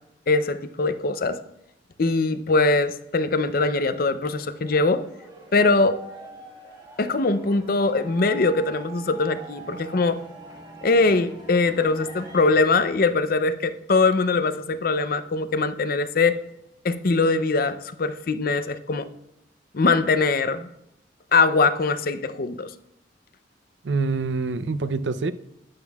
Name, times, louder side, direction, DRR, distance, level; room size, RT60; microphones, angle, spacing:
voice 1, 0.3-1.4 2.0-5.1 5.5-6.0 7.0-10.2 10.8-16.4 16.8-19.1 19.7-20.7 21.3-22.7, left 3 dB, 55° left, 11 dB, 0.6 m, -22 dB
sound 1, 4.4-12.5, right 2 dB, 25° right, 1.5 m, -44 dB
voice 2, 23.8-25.3, right 4 dB, 85° right, 13 dB, 0.5 m, -25 dB
11.5 x 9.1 x 2.3 m, 0.81 s
head